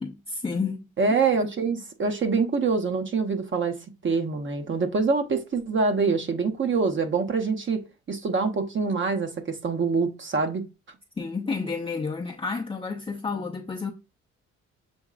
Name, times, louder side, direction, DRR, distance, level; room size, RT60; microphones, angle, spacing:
voice 1, 0.0-0.9 11.2-13.9, left 4 dB, 20° left, 0.6 m, -30 dB
voice 2, 1.0-3.8 4.0-10.6, right 4 dB, 40° right, 0.9 m, -25 dB
7.0 x 2.9 x 2.4 m
cardioid pair, 90°, 30 cm